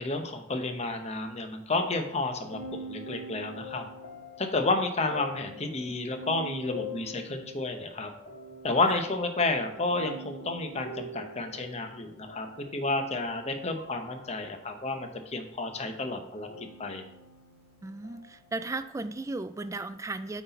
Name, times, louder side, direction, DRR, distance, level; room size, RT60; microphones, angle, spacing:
voice 1, 0.0-3.9 4.4-8.1 8.6-12.5 12.7-17.0, left 2 dB, 35° left, 6 dB, 0.8 m, -31 dB
sound 1, 2.4-15.1 16.4-18.7, left 1 dB, 70° left, 1.8 m, -45 dB
voice 2, 17.8-20.4, right 3 dB, 15° right, 12 dB, 0.3 m, -35 dB
8.2 x 4.1 x 4.0 m, 0.79 s
head